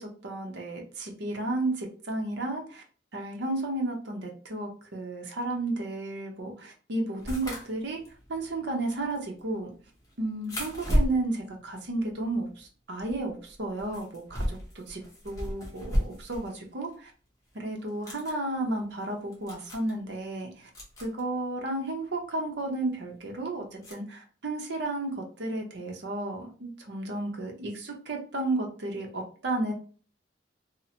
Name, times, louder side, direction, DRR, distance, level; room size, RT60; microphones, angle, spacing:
voice 1, 0.0-2.8 3.1-8.0 8.3-9.7 10.2-17.1 17.5-20.5 21.0-29.7, right 2 dB, 65° right, 2 dB, 0.7 m, -33 dB
sound 1, 7.2-12.7 13.0-16.6 16.9-17.0 17.8-18.4 19.0-19.1 19.3-19.9 20.7-21.2 22.6-22.7 23.8-23.9, equal, 15° left, 0.7 m, -33 dB
2.8 x 2.0 x 2.7 m, 0.39 s
head